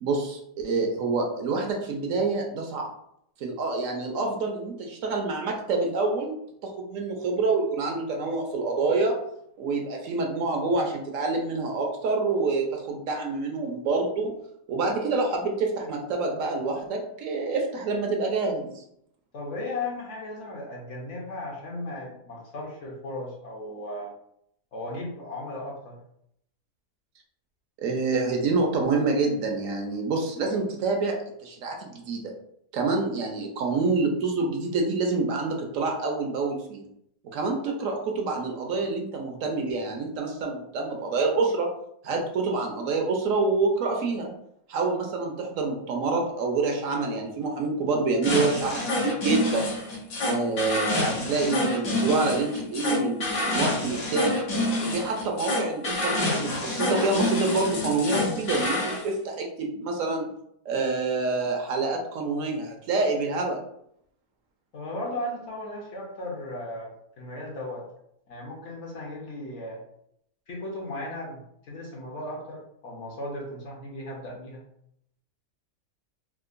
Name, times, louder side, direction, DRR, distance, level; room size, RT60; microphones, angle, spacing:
voice 1, 0.0-2.9 3.4-6.4 6.6-9.1 9.6-14.3 14.7-18.8 27.8-32.3 32.7-36.9 37.3-41.7 42.0-44.3 44.7-49.7 50.2-54.4 54.8-60.3 60.7-63.6, right 3 dB, 70° right, 2 dB, 1.0 m, -27 dB
voice 2, 19.3-24.1 24.7-26.0 64.7-66.9 67.2-67.9 68.3-69.8 70.5-74.6, left 1 dB, 60° left, -2 dB, 1.0 m, -36 dB
sound 1, 48.2-59.0, left 2 dB, 75° left, 1.4 m, -28 dB
3.7 x 2.4 x 2.5 m, 0.73 s
omnidirectional pair, 1.5 m